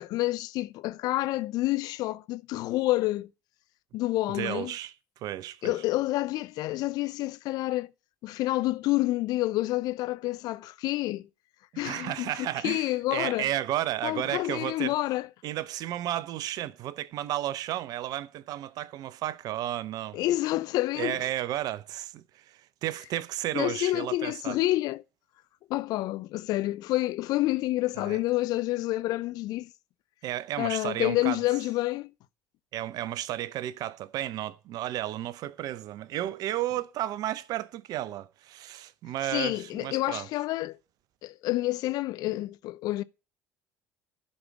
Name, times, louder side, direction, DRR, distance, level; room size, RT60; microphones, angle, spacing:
voice 1, 0.0-3.3 3.9-4.7 5.6-7.9 8.2-11.3 11.8-12.3 12.6-13.5 14.0-15.3 20.1-21.3 23.5-25.0 25.7-29.7 30.6-32.1 39.3-40.8 41.2-43.0, left 17 dB, 55° left, 0.5 m, -28 dB
voice 2, 4.3-4.9 5.2-5.7 11.7-14.9 15.4-20.2 20.9-24.6 28.0-28.2 30.2-31.4 32.7-40.3, right 13 dB, 55° right, 0.7 m, -33 dB
11.0 x 5.4 x 7.1 m
figure-of-eight pair, 60°, 8 cm